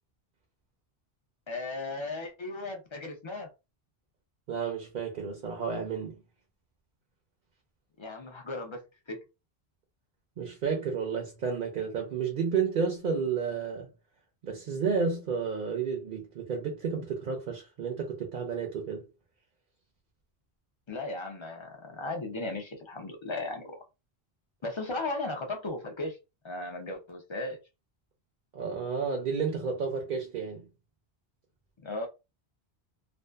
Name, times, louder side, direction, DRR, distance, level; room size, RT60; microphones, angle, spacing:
voice 1, 1.5-3.5 8.0-9.2 20.9-23.8 24.6-26.2 26.4-27.6 31.8-32.1, left 2 dB, 40° left, 0.4 m, -36 dB
voice 2, 4.5-6.2 10.4-13.9 14.4-19.1 28.5-30.7, right 5 dB, 55° right, 0.7 m, -31 dB
2.6 x 2.3 x 2.2 m
omnidirectional pair, 1.1 m